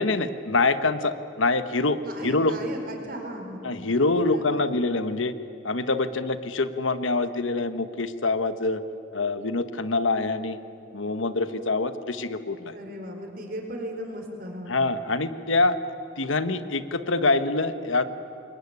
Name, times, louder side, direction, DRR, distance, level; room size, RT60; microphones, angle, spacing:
voice 1, 0.0-2.6 3.6-5.3 5.6-8.8 9.1-10.6 10.9-12.7 14.7-15.8 16.2-18.0, left 3 dB, 85° left, 11 dB, 1.3 m, -25 dB
voice 2, 2.0-3.6 4.2-4.8 12.7-14.8, equal, 45° right, 3 dB, 4.6 m, -36 dB
26.5 x 22.0 x 9.7 m, 2.5 s
head